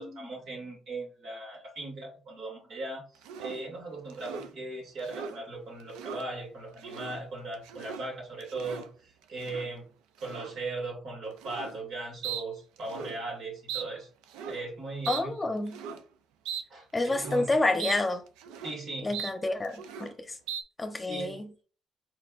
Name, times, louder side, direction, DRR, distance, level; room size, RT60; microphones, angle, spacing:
voice 1, 0.0-9.9 10.2-14.1 14.5-15.3 16.7-17.5 18.6-19.1 21.1-21.4, right 2 dB, 65° right, 2.3 m, -38 dB
sound 1, 3.2-3.6 4.1-4.5 5.0-5.4 5.8-6.2 6.7-7.2 7.5-8.1 8.4-8.9 9.4-9.7 10.2-10.5 11.4-11.8 12.2-12.4 12.8-13.2 13.7-13.9 14.2-14.6 15.0-15.2 15.7-16.0 16.5-16.6 17.0-17.4 17.8-18.0 18.3-18.8 19.1-19.3 19.6-20.1 20.5-20.6, right 8 dB, 80° right, 0.4 m, -39 dB
voice 2, 15.1-15.8 16.9-18.2 19.0-20.4 20.8-21.5, left 2 dB, 25° left, 0.9 m, -29 dB
4.5 x 4.3 x 2.5 m
supercardioid pair, 60°, 0 cm